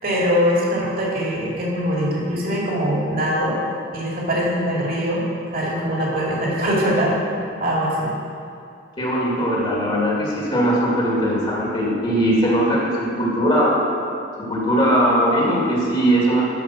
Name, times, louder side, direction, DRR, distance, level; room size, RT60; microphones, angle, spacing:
voice 1, 0.0-3.6 3.9-5.2 5.5-7.2 7.6-8.1, equal, 50° right, -4 dB, 2.4 m, -22 dB
voice 2, 9.0-13.8 14.4-16.4, equal, 30° left, -5 dB, 2.3 m, -20 dB
12.5 x 5.2 x 6.2 m, 2.5 s
head